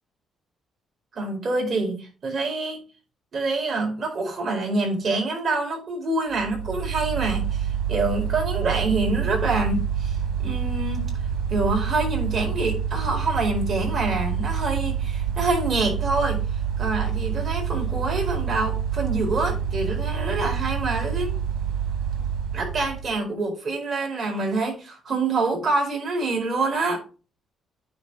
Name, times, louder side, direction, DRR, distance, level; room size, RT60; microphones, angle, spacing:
voice 1, 1.1-2.8 3.3-11.1 11.5-16.4 16.8-21.3 22.5-27.0, right 3 dB, 45° right, 4.4 m, -26 dB
Mechanical fan, 6.3-23.2, right 7 dB, 80° right, 2.3 m, -27 dB
9.6 x 4.3 x 5.1 m
cardioid pair, 105°, 0 cm